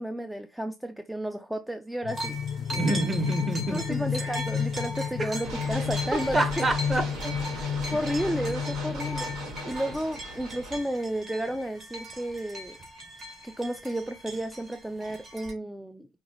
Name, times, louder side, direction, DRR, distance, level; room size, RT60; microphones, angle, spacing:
voice 1, 0.0-3.0 3.7-6.7 7.9-9.3 9.6-12.8 13.4-16.1, right 1 dB, 5° right, 0.3 m, -32 dB
sound 1, 2.0-9.9, left 7 dB, 65° left, 0.5 m, -32 dB
sound 2, 2.1-15.5, right 1 dB, 40° right, 1.9 m, -40 dB
voice 2, 2.7-4.0 5.2-5.3 6.3-7.6, right 2 dB, 25° right, 1.0 m, -28 dB
sound 3, 5.4-10.8, right 1 dB, 80° right, 1.7 m, -38 dB
5.2 x 2.3 x 3.0 m
supercardioid pair, 90°, 0 cm